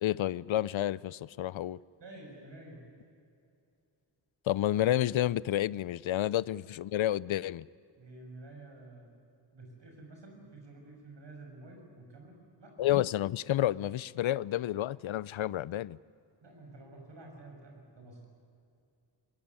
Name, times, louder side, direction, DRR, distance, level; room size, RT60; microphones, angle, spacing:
voice 1, 0.0-1.8 4.5-7.7 12.8-16.0, left 13 dB, 85° left, 0.6 m, -30 dB
voice 2, 2.0-2.8 8.0-9.1 9.5-12.7 16.4-18.3, right 2 dB, 65° right, 6.7 m, -50 dB
22.5 x 21.5 x 9.8 m
wide cardioid pair, 105°, 46 cm